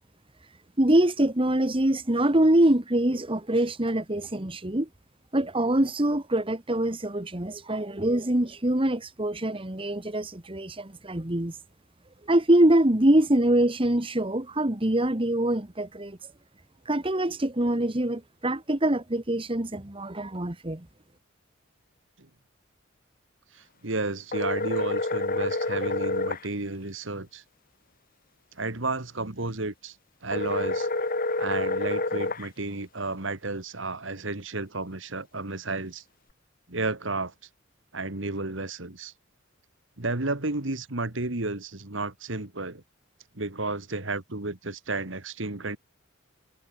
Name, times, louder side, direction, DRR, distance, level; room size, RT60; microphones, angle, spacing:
voice 1, 0.8-4.9 5.3-11.5 12.3-16.2 16.8-20.9, right 1 dB, 25° right, 1.6 m, -24 dB
voice 2, 23.5-27.4 28.5-30.0 30.2-30.9 31.4-36.0 36.7-37.3 37.9-39.1 40.0-42.8 43.3-45.8, right 3 dB, 65° right, 2.1 m, -32 dB
sound 1, 24.3-26.5 30.3-32.5, left 2 dB, 45° left, 2.5 m, -28 dB
head